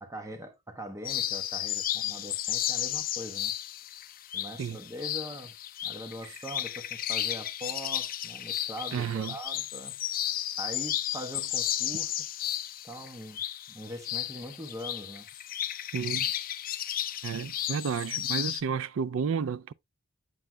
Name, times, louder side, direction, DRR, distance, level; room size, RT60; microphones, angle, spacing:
voice 1, 0.0-3.5 4.3-5.5 5.8-10.0 10.6-12.4 12.8-13.4 13.7-15.3, equal, 15° right, 1.1 m, -42 dB
sound 1, 1.1-18.6, left 12 dB, 45° left, 0.5 m, -33 dB
voice 2, 8.9-9.3 15.9-16.3 17.2-19.7, right 6 dB, 90° right, 0.4 m, -31 dB
7.8 x 7.6 x 2.2 m
head